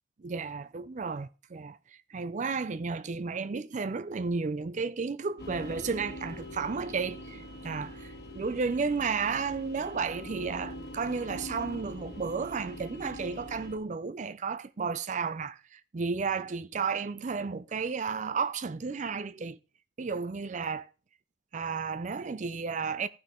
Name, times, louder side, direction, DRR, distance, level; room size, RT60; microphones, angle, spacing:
voice 1, 0.2-19.6 20.0-20.9 21.5-23.1, right 5 dB, 40° right, 0.5 m, -33 dB
sound 1, 5.4-13.7, equal, 60° left, 1.8 m, -43 dB
15.0 x 5.8 x 3.7 m
head